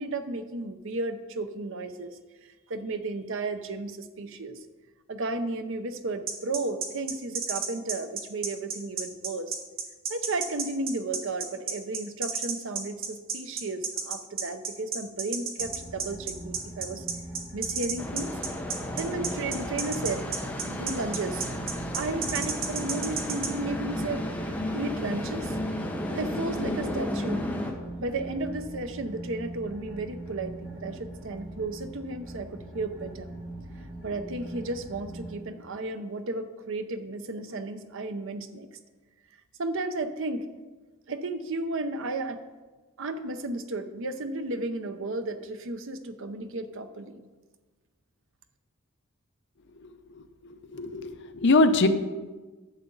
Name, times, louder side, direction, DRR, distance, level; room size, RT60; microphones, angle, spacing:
voice 1, 0.0-2.1 2.4-4.6 5.1-9.5 10.1-17.1 17.5-18.4 19.0-20.3 20.7-21.5 21.9-24.3 24.7-25.6 26.1-27.5 28.0-33.3 34.0-38.7 39.6-40.5 41.1-42.4 43.0-47.2, right 2 dB, 65° right, 9 dB, 0.7 m, -33 dB
sound 1, 6.3-23.5, right 5 dB, 45° right, 1.2 m, -31 dB
sound 2, 15.6-35.3, right 1 dB, 10° right, 2.2 m, -42 dB
sound 3, 18.0-27.7, left 1 dB, 5° left, 0.9 m, -33 dB
voice 2, 50.7-51.9, left 2 dB, 55° left, 9 dB, 0.6 m, -22 dB
11.5 x 6.9 x 3.9 m, 1.3 s
head